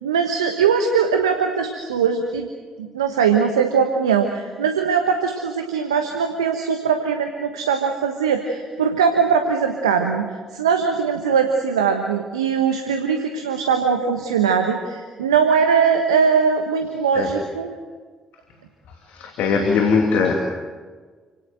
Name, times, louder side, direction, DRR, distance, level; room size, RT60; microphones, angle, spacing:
voice 1, 0.0-2.5 2.8-10.3 10.5-17.7, right 6 dB, 85° right, 5 dB, 1.3 m, -20 dB
voice 2, 19.0-20.3, left 5 dB, 65° left, 2 dB, 2.8 m, -20 dB
29.0 x 18.5 x 7.7 m, 1.5 s
figure-of-eight pair, 40°, 3 cm